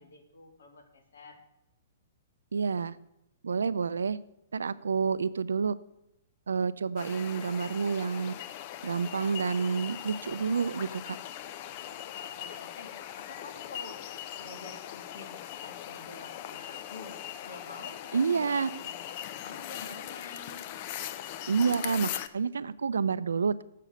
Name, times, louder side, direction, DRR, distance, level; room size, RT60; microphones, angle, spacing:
voice 1, 0.0-1.4 12.1-14.0 14.4-20.6, left 3 dB, 75° left, 5 dB, 1.9 m, -49 dB
voice 2, 2.5-3.0 3.4-4.2 4.5-5.7 6.5-8.3 8.8-11.2 18.1-18.7 21.5-23.6, right 5 dB, 80° right, 16 dB, 0.4 m, -29 dB
sound 1, 7.0-22.3, left 11 dB, 45° left, 0.6 m, -40 dB
7.5 x 6.5 x 7.9 m, 0.86 s
hypercardioid pair, 120°, 0 cm